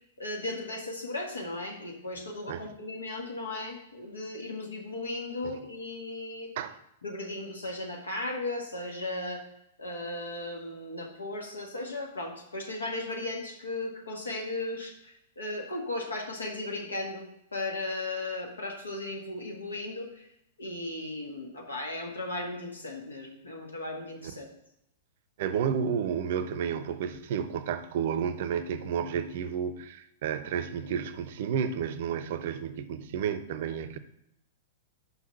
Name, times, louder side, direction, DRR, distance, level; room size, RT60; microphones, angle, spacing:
voice 1, 0.2-6.5 7.0-9.4 9.8-17.2 17.5-20.3 20.6-24.5, left 2 dB, 75° left, 1.7 m, -36 dB
voice 2, 25.4-34.0, right 7 dB, 50° right, 0.6 m, -31 dB
5.7 x 5.7 x 5.7 m
figure-of-eight pair, 100°, 0 cm